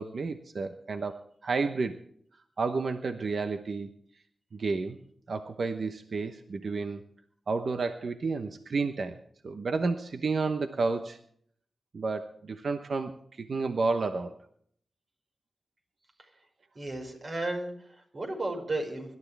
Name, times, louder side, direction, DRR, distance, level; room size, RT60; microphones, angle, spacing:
voice 1, 0.0-2.0 2.6-3.9 4.5-5.0 5.3-7.0 7.5-9.2 9.4-11.2 11.9-14.3, right 4 dB, 70° right, 7 dB, 0.9 m, -31 dB
voice 2, 16.8-19.2, right 2 dB, 50° right, 3 dB, 5.5 m, -34 dB
25.0 x 12.5 x 3.4 m, 0.63 s
cardioid pair, 55°, 0 cm